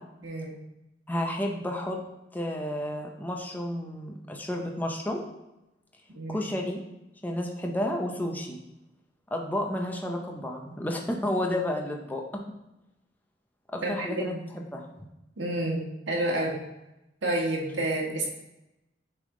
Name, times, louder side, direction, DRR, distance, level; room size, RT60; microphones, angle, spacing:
voice 1, 1.1-2.0 2.3-5.2 6.3-6.8 7.2-8.6 9.3-12.4 13.7-14.3 14.7-14.9, left 1 dB, 10° left, 1 dB, 0.5 m, -31 dB
voice 2, 13.8-14.4 15.4-16.6 17.2-18.3, right 1 dB, 80° right, -2 dB, 1.5 m, -29 dB
8.5 x 3.5 x 3.7 m, 0.93 s
head